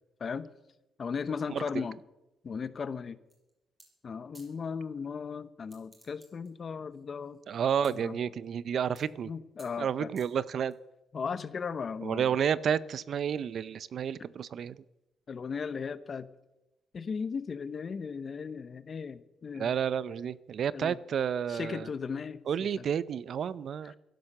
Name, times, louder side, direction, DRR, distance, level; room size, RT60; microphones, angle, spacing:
voice 1, 1.0-2.0 2.4-3.2 4.0-7.4 7.9-8.2 9.3-10.1 11.1-12.4 15.3-16.3 16.9-19.7 20.7-21.0 21.5-22.4 22.8-22.9 23.8-24.0, left 5 dB, 45° left, 14 dB, 0.9 m, -36 dB
voice 2, 1.5-1.9 7.5-9.3 9.8-10.7 12.0-14.8 19.5-21.9 22.5-23.9, right 8 dB, 60° right, 18 dB, 0.6 m, -31 dB
sound 1, 3.3-3.5 3.8-3.9 4.3-4.5 5.6-6.5 6.9-7.9 8.4-8.6 9.0-9.2 9.6-9.7 10.2-10.7, right 3 dB, 25° right, 6.4 m, -57 dB
15.5 x 11.5 x 6.6 m, 0.98 s
cardioid pair, 100°, 0 cm